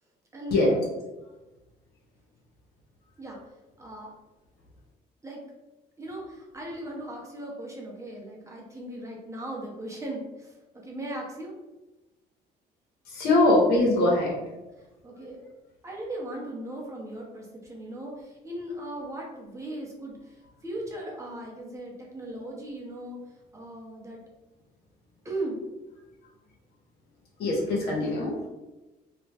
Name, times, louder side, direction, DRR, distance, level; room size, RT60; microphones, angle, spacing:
voice 1, 0.3-0.9 3.2-3.4 3.8-4.1 5.2-5.4 6.0-11.5 14.8-15.5 15.8-23.2 23.5-24.2 25.2-25.6, right 1 dB, 15° right, -2 dB, 0.7 m, -38 dB
voice 2, 13.1-14.4 27.4-28.5, left 2 dB, 75° left, -2 dB, 1.0 m, -22 dB
2.4 x 2.2 x 3.3 m, 1.1 s
cardioid pair, 110°, 17 cm